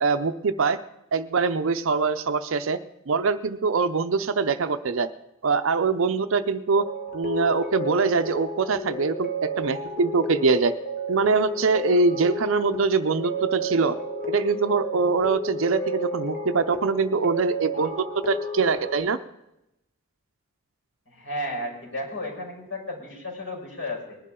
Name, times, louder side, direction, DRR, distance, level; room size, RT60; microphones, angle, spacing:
voice 1, 0.0-0.8 1.1-2.8 3.1-5.1 5.4-6.9 7.1-10.7 11.1-14.0 14.3-19.2, right 4 dB, 70° right, 10 dB, 0.6 m, -23 dB
sound 1, 6.7-19.0, equal, 45° left, 1.7 m, -32 dB
voice 2, 21.1-24.2, left 1 dB, 65° left, -2 dB, 5.4 m, -33 dB
20.0 x 11.0 x 3.8 m, 0.87 s
head